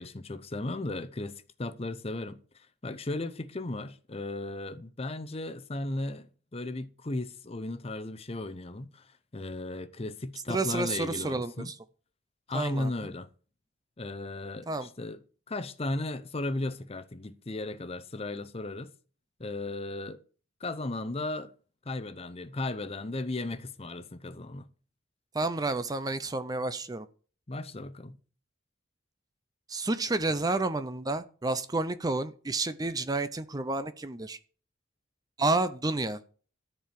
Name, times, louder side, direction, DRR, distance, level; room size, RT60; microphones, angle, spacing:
voice 1, 0.0-11.7 12.5-13.3 14.0-15.2 15.5-18.9 19.4-20.2 20.6-21.5 21.9-24.7 27.5-28.2, left 2 dB, 30° left, 0.7 m, -36 dB
voice 2, 10.5-11.7 12.5-12.9 14.7-14.9 25.3-27.1 29.7-34.4 35.4-36.2, right 2 dB, 20° right, 0.5 m, -30 dB
13.5 x 4.6 x 8.8 m
head